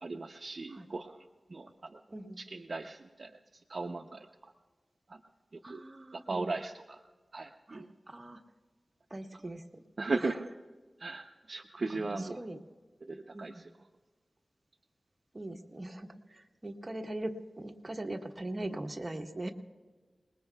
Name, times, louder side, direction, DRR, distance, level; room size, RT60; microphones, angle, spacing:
voice 1, 0.0-1.2 1.5-2.0 2.4-3.4 3.7-4.5 5.1-5.2 5.5-5.8 6.1-7.0 7.3-7.9 10.0-10.4 11.0-12.4 13.0-13.7, right 3 dB, 60° right, 4 dB, 0.7 m, -37 dB
voice 2, 2.1-2.4 5.6-6.6 7.7-8.4 9.1-9.8 10.2-10.4 11.9-12.6 13.3-13.6 15.3-19.5, right 1 dB, 35° right, 2 dB, 1.4 m, -41 dB
28.0 x 20.0 x 2.3 m, 1.4 s
wide cardioid pair, 80°, 0 cm